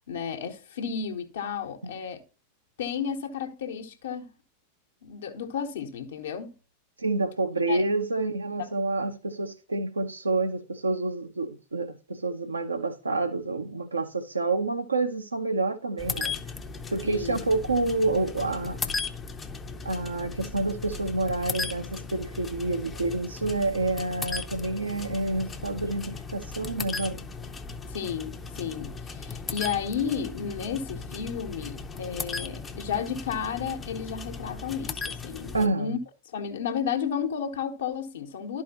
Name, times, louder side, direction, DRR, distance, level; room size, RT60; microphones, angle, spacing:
voice 1, 0.1-2.2 2.8-4.3 5.0-6.5 7.7-7.8 8.6-8.7 17.0-17.4 27.9-36.0 36.3-38.6, left 7 dB, 60° left, 1.0 m, -32 dB
voice 2, 7.0-16.4 16.9-18.8 19.8-27.2 35.5-36.0, right 2 dB, 80° right, 0.7 m, -28 dB
sound 1, 16.0-35.7, left 4 dB, 20° left, 0.6 m, -37 dB
11.5 x 4.7 x 2.9 m
figure-of-eight pair, 90°, 0 cm